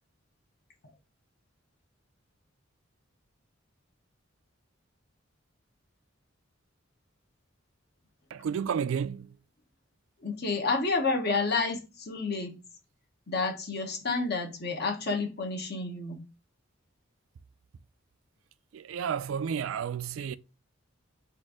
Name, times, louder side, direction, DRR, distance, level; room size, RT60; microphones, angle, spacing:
voice 1, 8.3-9.3 18.7-20.4, right 7 dB, 75° right, 0.3 m, -31 dB
voice 2, 10.2-12.5 13.3-16.2, left 3 dB, 55° left, 1.1 m, -30 dB
4.2 x 2.6 x 4.8 m
head